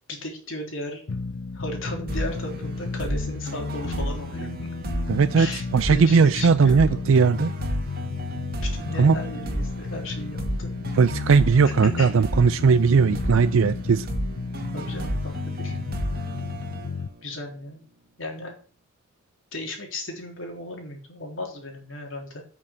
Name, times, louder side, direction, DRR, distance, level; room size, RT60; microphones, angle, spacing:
voice 1, 0.1-1.0 1.5-4.5 5.4-7.3 8.6-10.7 11.6-12.1 14.7-15.8 17.2-17.8 18.2-18.5 19.5-22.4, left 1 dB, 70° left, 2 dB, 3.5 m, -35 dB
sound 1, 1.1-17.1, left 4 dB, 85° left, 0.6 m, -33 dB
sound 2, 2.1-17.5, right 1 dB, 45° right, 2.0 m, -33 dB
voice 2, 5.1-5.5 5.7-7.5 9.0-9.2 11.0-14.1, right 5 dB, 75° right, 13 dB, 0.4 m, -18 dB
8.7 x 6.1 x 7.8 m, 0.42 s
head